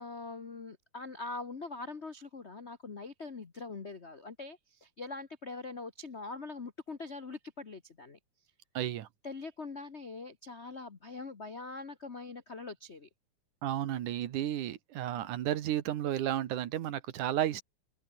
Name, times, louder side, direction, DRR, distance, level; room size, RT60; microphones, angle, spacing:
voice 1, 0.0-8.2 9.2-13.1, left 3 dB, 85° left, 0.6 m, -43 dB
voice 2, 8.7-9.1 13.6-17.6, right 12 dB, 90° right, 2.9 m, -32 dB
open air
omnidirectional pair, 3.5 m